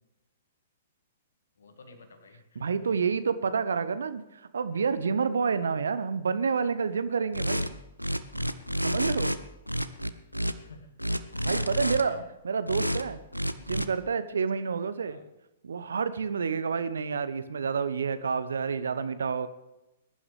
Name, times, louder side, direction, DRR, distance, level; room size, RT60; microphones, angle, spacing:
voice 1, 1.6-2.9 10.6-11.0 11.2-12.2 15.0-15.3, left 3 dB, 60° left, 6 dB, 2.0 m, -52 dB
voice 2, 2.6-7.8 8.8-9.4 11.4-13.2 13.7-15.2 15.6-19.5, right 5 dB, 65° right, 13 dB, 0.8 m, -29 dB
sound 1, 7.3-7.7 8.0-9.4 9.7-10.5 11.0-12.0 12.7-13.0 13.3-13.9, equal, 90° left, 0.6 m, -29 dB
21.0 x 11.0 x 3.5 m, 0.96 s
figure-of-eight pair, 110°, 0 cm